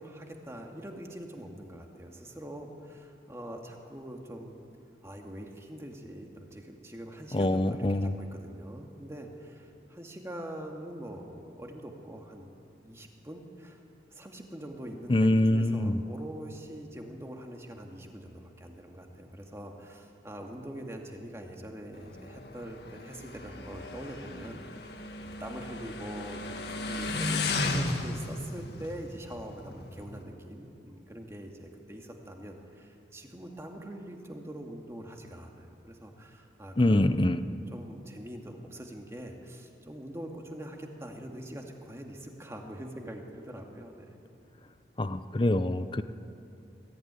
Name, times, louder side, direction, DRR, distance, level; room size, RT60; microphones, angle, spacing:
voice 1, 0.0-4.6 5.0-12.5 12.8-13.8 14.1-24.6 25.2-44.2, right 1 dB, 15° right, 2 dB, 2.1 m, -43 dB
voice 2, 7.3-8.1 15.1-16.0 36.8-37.4 45.0-46.0, left 1 dB, 30° left, 11 dB, 0.6 m, -25 dB
Motorcycle, 21.9-30.2, left 2 dB, 70° left, 1.7 m, -35 dB
22.0 x 14.5 x 9.7 m, 2.6 s
head